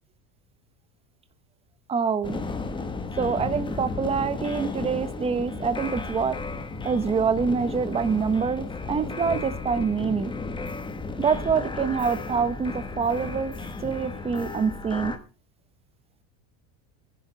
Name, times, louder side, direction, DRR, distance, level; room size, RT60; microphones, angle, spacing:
voice 1, 1.9-2.4 3.2-6.4 6.8-10.3 11.2-13.5 13.8-15.1, right 6 dB, 15° right, 11 dB, 0.9 m, -25 dB
sound 1, 2.2-15.2, left 3 dB, 10° left, 1.2 m, -34 dB
23.5 x 10.5 x 3.3 m, 0.34 s
cardioid pair, 160°, 42 cm